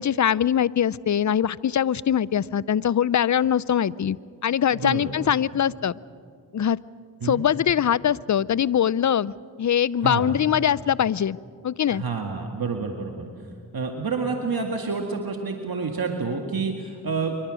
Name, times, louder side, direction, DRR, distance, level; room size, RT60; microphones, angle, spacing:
voice 1, 0.0-4.2 4.4-5.9 6.5-6.8 7.2-9.3 9.6-11.4 11.6-12.0, left 9 dB, 50° left, 21 dB, 0.6 m, -22 dB
voice 2, 4.7-5.1 7.2-7.4 10.0-10.4 11.9-13.3 13.7-17.4, right 4 dB, 65° right, 3 dB, 1.9 m, -28 dB
25.0 x 23.0 x 6.4 m, 2.2 s
cardioid pair, 45°, 39 cm